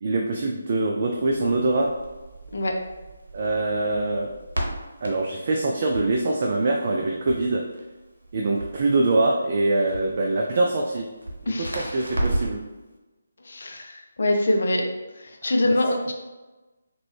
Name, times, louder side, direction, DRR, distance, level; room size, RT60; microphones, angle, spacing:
voice 1, 0.0-1.9 3.3-4.3 5.0-7.6 8.3-11.1 11.4-12.6 15.4-15.5, right 2 dB, 40° right, 0 dB, 0.3 m, -24 dB
Crackle, 1.1-12.7, right 1 dB, 65° right, 0.9 m, -35 dB
voice 2, 11.5-12.0 13.5-14.9 15.2-16.1, left 1 dB, 55° left, 2 dB, 0.5 m, -24 dB
3.7 x 2.2 x 3.1 m, 1.1 s
figure-of-eight pair, 150°, 0 cm